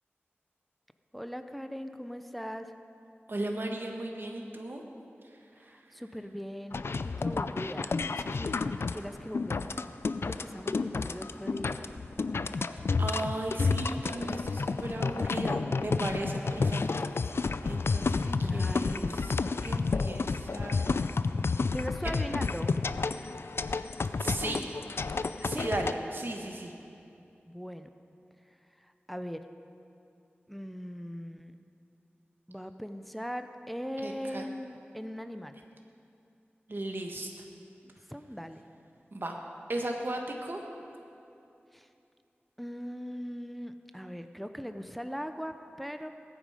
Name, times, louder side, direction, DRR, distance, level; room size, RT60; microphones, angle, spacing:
voice 1, 1.1-2.7 5.6-9.8 10.2-11.8 18.4-19.2 21.6-22.7 24.2-24.8 25.5-25.7 27.5-27.9 29.1-29.4 30.5-31.5 32.5-35.6 37.8-38.6 41.7-41.9 42.6-46.1, equal, ahead, 8 dB, 0.7 m, -40 dB
voice 2, 3.3-4.8 5.6-5.7 13.0-17.1 17.3-19.3 19.6-20.9 22.0-22.1 24.2-24.6 25.4-26.8 34.0-34.5 36.7-37.3 39.1-39.4 39.7-40.6, right 1 dB, 55° right, 1 dB, 1.5 m, -36 dB
sound 1, 6.7-25.9, left 4 dB, 75° left, 0.4 m, -30 dB
20.0 x 9.1 x 5.0 m, 2.7 s
wide cardioid pair, 50°, 4 cm